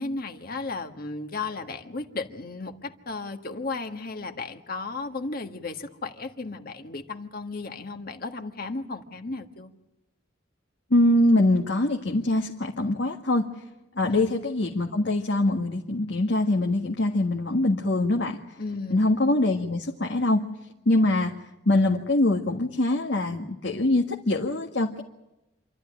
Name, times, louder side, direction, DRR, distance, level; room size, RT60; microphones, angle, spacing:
voice 1, 0.0-9.7 14.0-14.2 18.6-19.0, left 3 dB, 50° left, 6 dB, 1.6 m, -34 dB
voice 2, 10.9-13.4 13.9-18.4 18.9-20.4 20.8-21.3 21.6-25.0, left 1 dB, 70° left, 1 dB, 1.7 m, -23 dB
27.5 x 12.5 x 10.0 m, 0.97 s
head